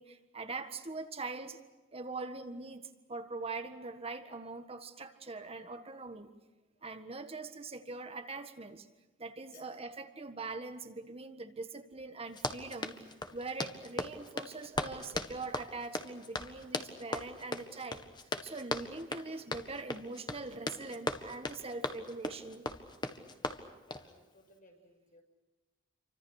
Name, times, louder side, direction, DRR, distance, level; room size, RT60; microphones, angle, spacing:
voice 1, 0.0-1.6 1.9-6.3 6.8-8.9 9.2-13.0 13.3-18.0 18.4-22.6, right 3 dB, 30° right, 8 dB, 1.6 m, -42 dB
Run, 12.3-24.1, left 2 dB, 25° left, 1.7 m, -38 dB
voice 2, 23.8-25.2, left 2 dB, 45° left, 3 dB, 6.5 m, -61 dB
28.5 x 25.0 x 6.5 m, 1.1 s
head